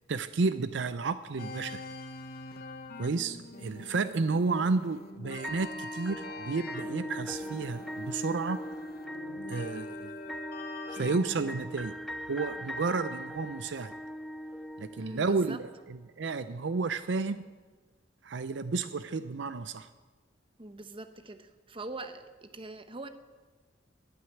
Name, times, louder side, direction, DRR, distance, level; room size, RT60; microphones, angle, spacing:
voice 1, 0.1-1.8 3.0-8.6 9.5-10.1 10.9-11.9 12.3-13.9 14.8-15.6 15.9-17.4 18.2-19.9, right 4 dB, 65° right, 12 dB, 0.5 m, -31 dB
sound 1, 1.4-11.6, left 3 dB, 55° left, 1.0 m, -45 dB
sound 2, 5.4-15.5, equal, ahead, 0.5 m, -40 dB
voice 2, 15.0-15.6 20.6-23.1, right 2 dB, 30° right, 9 dB, 0.9 m, -43 dB
11.0 x 8.9 x 9.2 m, 1.3 s
head